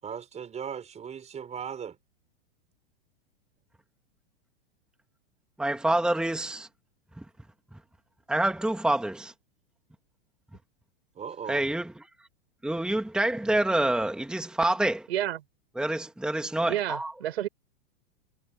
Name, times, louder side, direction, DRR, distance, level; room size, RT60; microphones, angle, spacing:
voice 1, 0.0-2.0 11.1-11.6, right 7 dB, 20° right, 5.2 m, -38 dB
voice 2, 5.6-6.7 8.3-9.3 11.5-11.9 12.6-15.1 15.8-17.1, right 1 dB, 5° right, 2.0 m, -27 dB
voice 3, 15.1-15.4 16.6-17.5, right 12 dB, 75° right, 4.7 m, -30 dB
hypercardioid pair, 120°, 32 cm